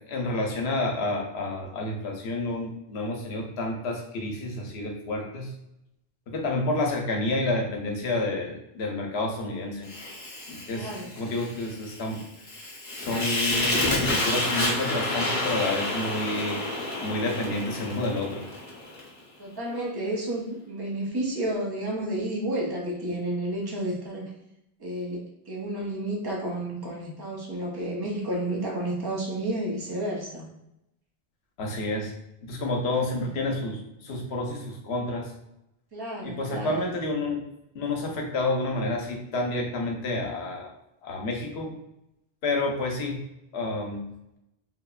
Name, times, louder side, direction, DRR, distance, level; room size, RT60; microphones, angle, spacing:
voice 1, 0.1-5.5 6.3-9.9 10.5-10.9 11.2-12.2 13.0-16.6 17.0-18.4 31.6-32.1 32.5-35.3 36.2-37.4 37.7-40.7 41.0-41.7 42.4-43.2 43.5-44.0, left 2 dB, 85° left, 1 dB, 0.8 m, -29 dB
Fire, 9.8-19.1, left 2 dB, 35° left, 0.9 m, -30 dB
voice 2, 10.7-11.1 19.4-24.3 24.8-30.5 33.2-33.3 35.9-36.9, right 1 dB, 30° right, -3 dB, 0.5 m, -31 dB
3.1 x 2.0 x 2.3 m, 0.85 s
omnidirectional pair, 1.0 m